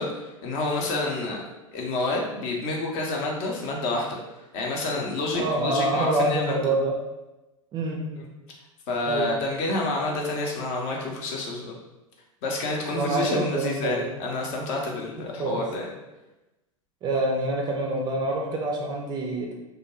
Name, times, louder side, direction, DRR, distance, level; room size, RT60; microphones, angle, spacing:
voice 1, 0.0-1.4 1.7-4.2 4.5-6.7 8.2-8.3 8.9-11.8 12.4-15.9, left 2 dB, 40° left, -1 dB, 0.6 m, -29 dB
voice 2, 5.3-6.9 7.7-8.0 9.1-9.3 12.9-14.0 15.2-15.6 17.0-19.5, right 2 dB, 25° right, -1 dB, 0.4 m, -26 dB
2.2 x 2.1 x 3.0 m, 1.0 s
figure-of-eight pair, 90°, 18 cm